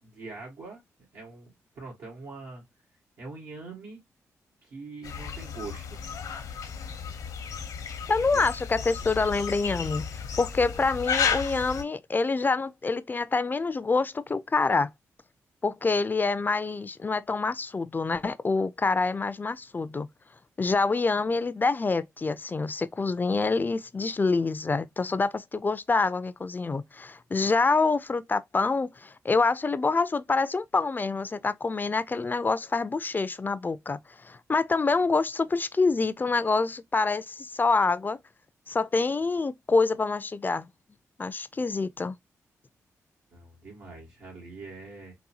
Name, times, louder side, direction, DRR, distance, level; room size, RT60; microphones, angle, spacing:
voice 1, 0.0-0.8 1.1-2.6 3.2-4.0 4.6-6.0 8.3-8.5 43.3-45.2, right 3 dB, 85° right, 1.9 m, -43 dB
sound 1, 5.0-11.8, left 6 dB, 80° left, 0.8 m, -33 dB
voice 2, 8.1-10.1 10.4-14.9 15.6-20.1 20.6-38.2 38.7-40.7 41.2-42.2, left 4 dB, 30° left, 0.4 m, -26 dB
4.0 x 2.2 x 2.7 m
cardioid pair, 55°, 6 cm